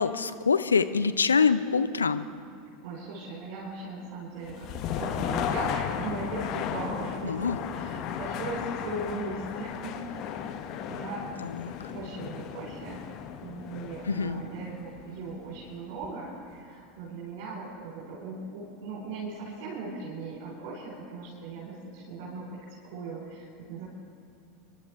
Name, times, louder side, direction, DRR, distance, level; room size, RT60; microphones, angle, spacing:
voice 1, 0.0-2.3 7.2-7.6 11.4-11.7 14.0-14.4, left 5 dB, 80° left, 11 dB, 0.5 m, -25 dB
voice 2, 2.8-10.4 10.8-11.3 11.9-13.0 13.4-23.8, right 3 dB, 55° right, -6 dB, 4.1 m, -38 dB
sound 1, 4.4-16.3, left 8 dB, 45° left, 1.0 m, -35 dB
28.5 x 11.5 x 3.4 m, 2.5 s
figure-of-eight pair, 80°, 0 cm